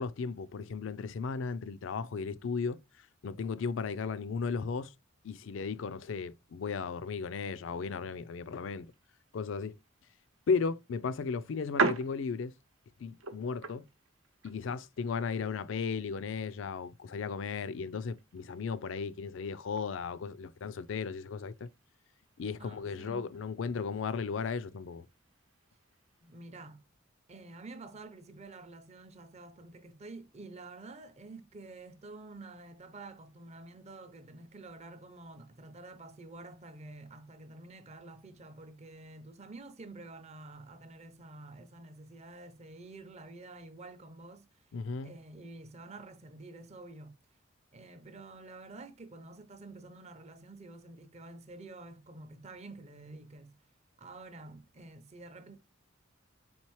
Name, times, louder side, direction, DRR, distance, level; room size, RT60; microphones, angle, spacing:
voice 1, 0.0-4.9 5.2-8.9 9.3-9.8 10.5-12.5 13.0-13.9 14.4-21.7 22.4-25.1 44.7-45.1, left 5 dB, 65° left, 0.4 m, -35 dB
sound 1, 8.2-26.4, right 4 dB, 80° right, 0.8 m, -43 dB
voice 2, 22.6-23.3 26.2-26.8 27.3-44.5 45.0-47.2 47.7-53.6 54.0-55.6, right 2 dB, 35° right, 0.6 m, -49 dB
4.3 x 3.7 x 3.0 m
head